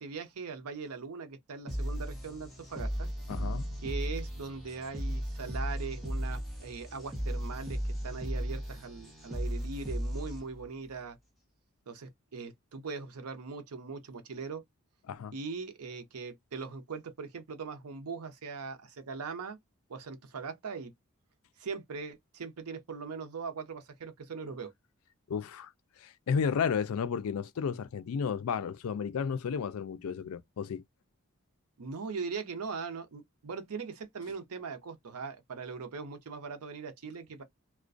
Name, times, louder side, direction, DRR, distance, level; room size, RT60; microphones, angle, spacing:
voice 1, 0.0-3.1 3.8-11.2 11.9-14.6 15.3-19.6 19.9-20.9 21.6-24.7 31.8-37.4, right 5 dB, 85° right, 0.6 m, -40 dB
sound 1, 1.7-10.7, equal, ahead, 0.9 m, -36 dB
voice 2, 3.3-3.8 15.1-15.3 25.3-25.7 26.0-30.8, left 6 dB, 75° left, 0.4 m, -33 dB
2.3 x 2.1 x 2.4 m
head